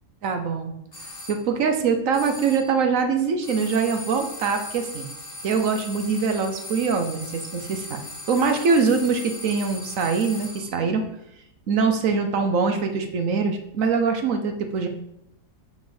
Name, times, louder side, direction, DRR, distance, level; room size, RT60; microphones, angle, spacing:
voice 1, 0.2-0.7 1.3-5.1 5.4-8.0 8.3-11.0 11.7-14.9, right 5 dB, 60° right, 6 dB, 1.1 m, -23 dB
sound 1, 0.9-1.4 2.1-2.8 3.4-10.8, left 1 dB, 25° left, 2.1 m, -39 dB
5.6 x 5.2 x 5.2 m, 0.79 s
omnidirectional pair, 1.7 m